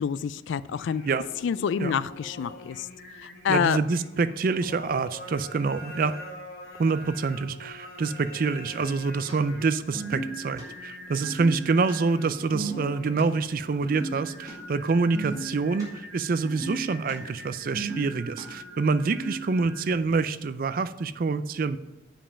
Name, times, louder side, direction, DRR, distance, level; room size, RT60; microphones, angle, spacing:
voice 1, 0.0-1.0 1.4-2.9 3.2-3.8, left 7 dB, 70° left, 17 dB, 0.3 m, -27 dB
Singing, 0.6-20.2, left 1 dB, 50° left, 1.3 m, -44 dB
voice 2, 3.5-6.1 6.8-21.8, right 4 dB, 45° right, 13 dB, 0.4 m, -26 dB
sound 1, 5.6-5.7 8.6-9.3 9.6-10.6 10.9-11.9 12.2-13.2 13.7-14.5 14.8-15.8 16.1-17.1 17.4-18.4 19.0-19.4, right 2 dB, 20° right, 2.5 m, -36 dB
7.4 x 5.2 x 5.6 m, 1.1 s
head